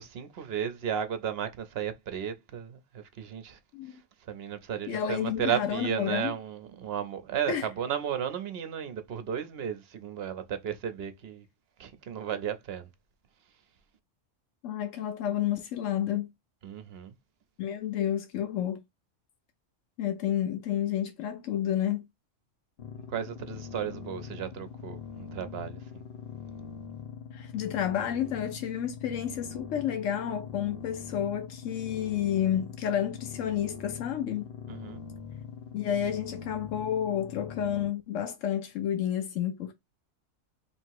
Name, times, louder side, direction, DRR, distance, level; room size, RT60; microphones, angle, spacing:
voice 1, 0.0-3.6 4.3-11.4 11.8-12.9 16.6-17.1 23.1-26.0 34.7-35.0, right 8 dB, 60° right, 0.8 m, -34 dB
voice 2, 4.9-6.4 7.5-7.7 14.6-16.3 17.6-18.8 20.0-22.0 27.3-34.5 35.7-39.7, left 10 dB, 80° left, 1.0 m, -30 dB
sound 1, 22.8-37.9, left 6 dB, 55° left, 1.0 m, -42 dB
3.0 x 2.8 x 4.5 m
omnidirectional pair, 1.3 m